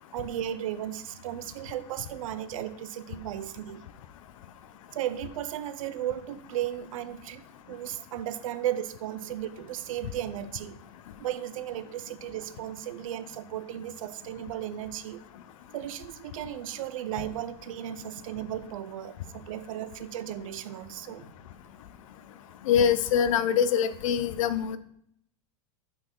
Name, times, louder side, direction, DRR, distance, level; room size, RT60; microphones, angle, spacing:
voice 1, 0.1-3.8 4.9-10.8 11.2-15.2 15.7-21.3, right 12 dB, 70° right, 13 dB, 0.6 m, -35 dB
voice 2, 22.6-24.8, left 8 dB, 65° left, 13 dB, 0.6 m, -24 dB
5.8 x 4.1 x 5.3 m, 0.71 s
supercardioid pair, 170°, 18 cm